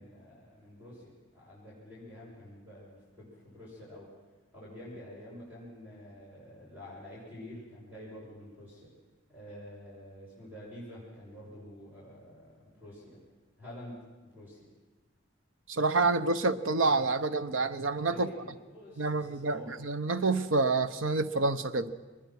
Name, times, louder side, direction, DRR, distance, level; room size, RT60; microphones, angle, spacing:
voice 1, 0.0-4.1 4.5-8.9 9.3-13.2 13.6-14.0 14.2-14.7 18.1-19.8, left 1 dB, 10° right, -7 dB, 6.7 m, -48 dB
voice 2, 15.7-18.3 19.0-21.9, right 3 dB, 85° right, 12 dB, 0.9 m, -28 dB
23.0 x 20.0 x 6.0 m, 1.2 s
head